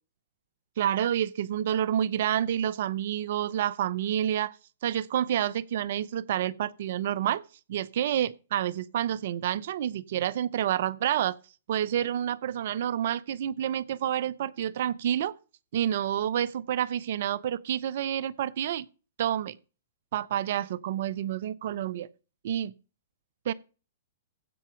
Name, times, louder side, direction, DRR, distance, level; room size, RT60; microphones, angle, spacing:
voice 1, 0.8-4.5 4.8-7.4 7.7-11.4 11.7-15.3 15.7-18.9 19.2-19.6 20.1-22.1 22.4-22.7 23.5-23.6, right 10 dB, 60° right, 0.6 m, -28 dB
15.5 x 5.6 x 5.0 m
hypercardioid pair, 130°, 0 cm